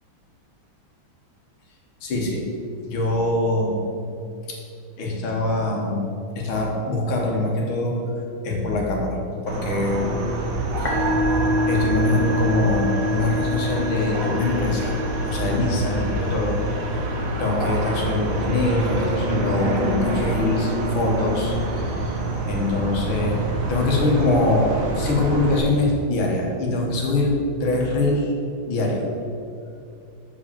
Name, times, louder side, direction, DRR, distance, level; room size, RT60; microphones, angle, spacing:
voice 1, 2.0-2.5 2.8-3.9 4.5-4.6 5.0-6.1 6.4-8.0 8.4-9.2 9.4-10.3 10.8-11.1 11.7-15.0 15.2-16.6 17.4-22.2 22.5-23.4 23.7-28.3 28.7-29.1, left 2 dB, 75° left, -1 dB, 2.1 m, -23 dB
sound 1, 9.5-25.6, right 1 dB, 50° right, 1.1 m, -26 dB
Musical instrument, 10.7-25.4, left 1 dB, 25° left, 1.1 m, -30 dB
6.2 x 5.0 x 6.9 m, 2.5 s
omnidirectional pair, 2.3 m